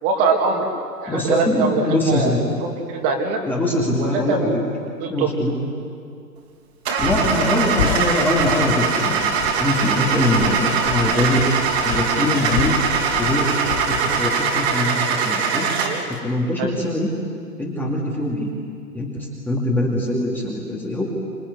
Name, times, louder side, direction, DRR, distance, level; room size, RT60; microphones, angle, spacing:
voice 1, 0.0-0.7 1.0-3.4 4.0-4.6 5.0-5.3 16.6-16.7, right 4 dB, 25° right, 1 dB, 2.7 m, -22 dB
voice 2, 1.1-2.4 3.5-4.5 5.1-5.5 7.0-11.4 11.8-12.7 13.2-15.6 16.2-17.1 17.6-18.5 18.9-21.0, left 1 dB, 5° left, -4 dB, 2.3 m, -23 dB
Car / Engine starting, 6.9-16.1, right 6 dB, 40° right, 3.2 m, -22 dB
sound 1, 7.0-14.8, left 8 dB, 20° left, 1.0 m, -31 dB
26.5 x 19.0 x 9.6 m, 2.3 s
hypercardioid pair, 145°, 49 cm